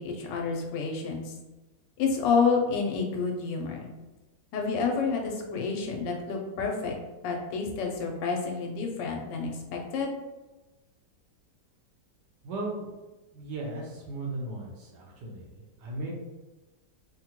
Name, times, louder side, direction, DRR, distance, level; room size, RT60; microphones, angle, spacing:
voice 1, 0.0-1.3 2.0-3.9 4.5-6.9 7.2-10.1, left 5 dB, 85° left, 1 dB, 1.3 m, -29 dB
voice 2, 12.4-12.9 13.3-16.1, right 2 dB, 75° right, -3 dB, 1.4 m, -36 dB
3.7 x 2.1 x 2.9 m, 1.1 s
omnidirectional pair, 1.9 m